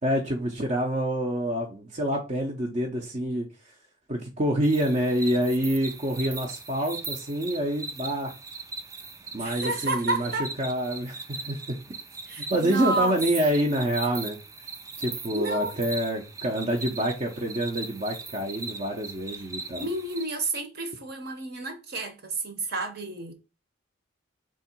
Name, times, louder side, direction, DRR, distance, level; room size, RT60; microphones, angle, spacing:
voice 1, 0.0-3.5 4.1-8.3 9.3-10.3 10.6-11.8 12.5-14.4 15.0-19.9, right 1 dB, 35° right, 0.7 m, -27 dB
sound 1, 4.6-20.2, right 3 dB, 15° right, 0.3 m, -40 dB
voice 2, 9.4-10.5 12.3-13.2 15.3-15.7 19.8-23.3, right 2 dB, 55° right, 1.0 m, -30 dB
3.7 x 3.2 x 4.4 m
head